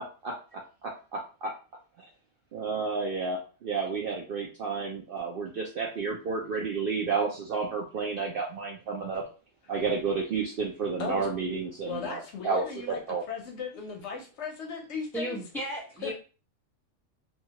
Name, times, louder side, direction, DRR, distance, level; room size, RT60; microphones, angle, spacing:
voice 1, 0.0-1.5 2.0-2.1 2.5-9.2 9.7-13.2, right 4 dB, 65° right, 0 dB, 0.6 m, -31 dB
voice 2, 11.8-13.0 13.3-15.4 16.0-16.1, left 5 dB, 65° left, 2 dB, 0.8 m, -36 dB
voice 3, 15.1-16.1, equal, ahead, -4 dB, 1.0 m, -34 dB
2.8 x 2.3 x 2.8 m, 0.35 s
omnidirectional pair, 1.3 m